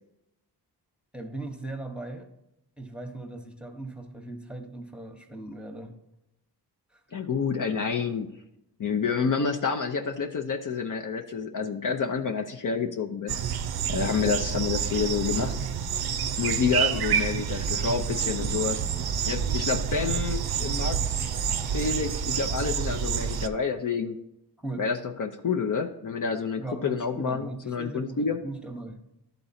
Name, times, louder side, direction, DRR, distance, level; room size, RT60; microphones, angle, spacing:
voice 1, 1.1-2.3 2.8-5.9 6.9-7.0 14.2-14.4 24.6-24.8 26.6-29.0, right 2 dB, ahead, 4 dB, 1.0 m, -38 dB
voice 2, 7.1-8.4 8.8-13.6 13.9-15.5 16.4-18.8 19.3-21.4 21.7-24.2 24.8-28.4, left 5 dB, 50° left, 4 dB, 0.6 m, -28 dB
sound 1, 13.3-23.5, right 8 dB, 65° right, 0.6 m, -28 dB
11.5 x 3.9 x 4.2 m, 0.88 s
cardioid pair, 65°, 41 cm